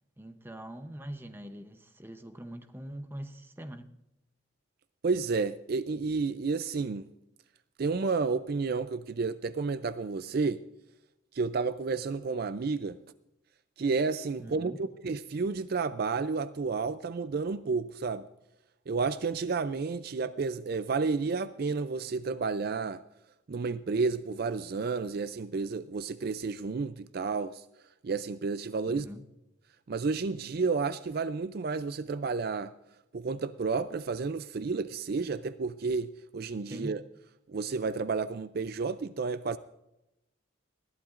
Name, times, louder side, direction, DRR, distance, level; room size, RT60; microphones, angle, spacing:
voice 1, 0.2-3.9 14.4-14.9 28.9-29.3 36.7-37.0, right 1 dB, 10° right, 0.7 m, -43 dB
voice 2, 5.0-7.1 7.8-10.6 11.3-13.0 13.8-18.3 18.9-23.0 23.5-27.6 28.0-29.1 29.9-32.7 33.1-37.0 37.5-39.6, right 4 dB, 50° right, 0.4 m, -31 dB
20.5 x 14.5 x 2.5 m
head